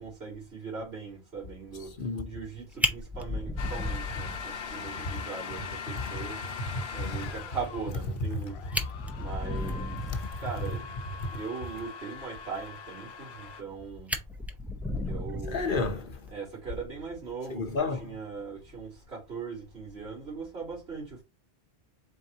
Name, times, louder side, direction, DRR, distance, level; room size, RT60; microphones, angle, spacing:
voice 1, 0.0-2.0 2.2-6.4 6.9-8.6 9.2-10.0 10.4-10.8 11.3-14.1 15.0-15.7 16.3-17.7 18.0-21.2, right 5 dB, 90° right, 3.2 m, -39 dB
Fire, 2.4-2.5 2.8-4.7 5.1-5.2 5.6-5.7 6.0-6.1 8.3-8.4 8.6-10.4 13.2-13.7 14.1-16.3 17.6-17.8, left 1 dB, ahead, 0.4 m, -33 dB
sound 1, 3.6-13.6, left 6 dB, 90° left, 0.9 m, -41 dB
voice 2, 5.9-6.3 6.7-6.8 8.4-8.5 10.1-10.4 11.2-11.4 15.5-16.3 17.5-18.2, left 3 dB, 60° left, 0.9 m, -32 dB
4.5 x 3.6 x 2.8 m
omnidirectional pair, 1.0 m